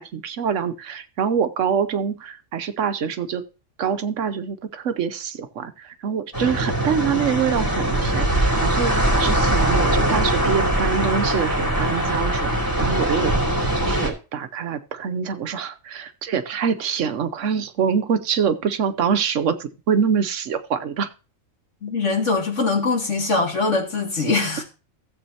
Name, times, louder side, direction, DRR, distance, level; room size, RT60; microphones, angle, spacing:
voice 1, 0.0-3.4 3.8-12.5 12.8-13.3 13.8-21.1, right 7 dB, 70° right, 1.1 m, -25 dB
sound 1, 6.3-14.1, right 1 dB, 15° left, 2.9 m, -21 dB
voice 2, 21.8-24.6, left 3 dB, 65° left, 2.6 m, -22 dB
16.0 x 7.8 x 2.8 m
omnidirectional pair, 1.4 m